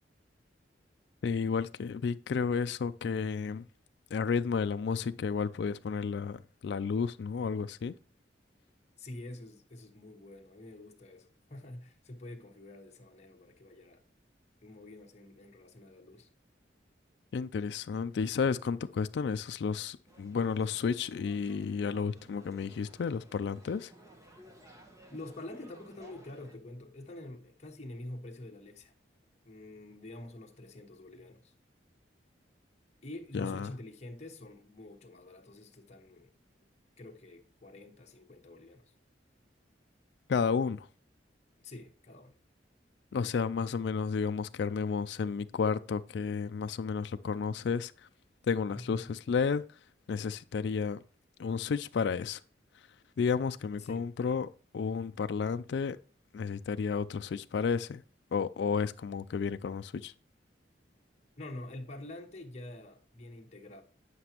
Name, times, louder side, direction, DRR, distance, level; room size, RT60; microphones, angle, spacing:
voice 1, 1.2-3.7 4.1-7.9 17.3-23.9 33.3-33.7 40.3-40.9 43.1-48.1 48.5-49.6 50.1-51.0 51.4-52.4 53.2-56.0 56.3-58.0 58.3-60.1, left 5 dB, 65° left, 0.3 m, -32 dB
voice 2, 9.0-14.0 14.6-16.3 25.1-28.9 29.4-31.5 33.0-36.3 37.0-38.8 41.6-42.3 48.7-49.1 53.8-54.1 61.4-63.8, left 1 dB, 35° left, 1.2 m, -46 dB
sound 1, 20.1-26.6, equal, 15° right, 1.2 m, -57 dB
9.6 x 5.9 x 2.9 m
head